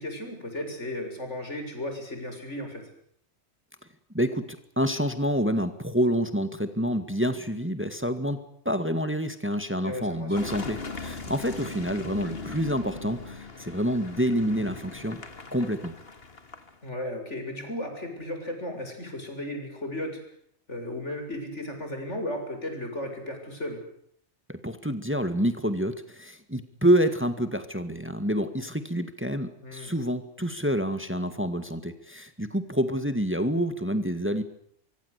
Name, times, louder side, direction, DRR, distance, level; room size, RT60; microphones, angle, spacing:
voice 1, 0.0-2.8 9.8-10.5 16.8-20.2 20.7-23.8 29.6-29.9, left 1 dB, 85° left, 5 dB, 7.5 m, -35 dB
voice 2, 4.1-15.2 15.5-15.9 24.5-34.4, equal, 10° right, 10 dB, 1.9 m, -27 dB
Car passing by / Engine, 10.3-16.9, left 3 dB, 55° left, 2.4 m, -39 dB
25.0 x 24.0 x 8.3 m, 0.67 s
omnidirectional pair, 1.2 m